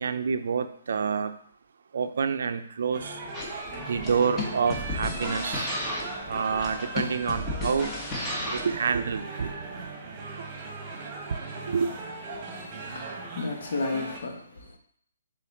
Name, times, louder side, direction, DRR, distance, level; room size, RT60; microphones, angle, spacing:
voice 1, 0.0-1.3 1.9-3.2 3.9-5.7 6.3-7.9 8.5-9.5 11.3-11.4 11.7-11.9, right 6 dB, 65° right, 0.5 m, -27 dB
sound 1, 2.9-14.2, right 3 dB, 25° right, 1.2 m, -39 dB
sound 2, 3.3-8.7, left 1 dB, 15° left, 1.2 m, -33 dB
voice 2, 12.3-14.8, left 3 dB, 65° left, 1.3 m, -34 dB
6.8 x 3.8 x 3.6 m
hypercardioid pair, 165°, 0 cm